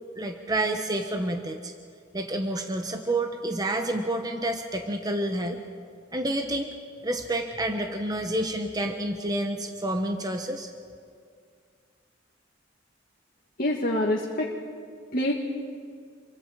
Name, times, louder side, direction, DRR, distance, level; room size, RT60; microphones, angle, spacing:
voice 1, 0.2-1.7 2.1-5.6 6.1-6.7 7.0-10.7, right 1 dB, 20° right, 4 dB, 1.1 m, -29 dB
voice 2, 13.6-14.6 15.1-15.3, left 1 dB, 50° left, -1 dB, 1.7 m, -26 dB
28.0 x 23.5 x 5.0 m, 2.2 s
head